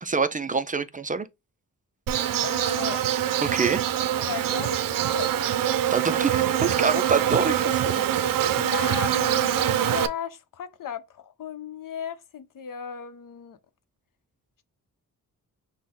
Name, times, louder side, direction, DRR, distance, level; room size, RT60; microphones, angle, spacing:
voice 1, 0.0-1.3 3.4-3.8 5.9-8.0, right 4 dB, 25° right, 0.4 m, -26 dB
Insect, 2.1-10.1, right 11 dB, 80° right, 0.5 m, -24 dB
voice 2, 2.4-3.0 4.2-5.4 8.6-13.6, left 8 dB, 75° left, 0.7 m, -36 dB
6.1 x 2.2 x 3.6 m
cardioid pair, 95°, 33 cm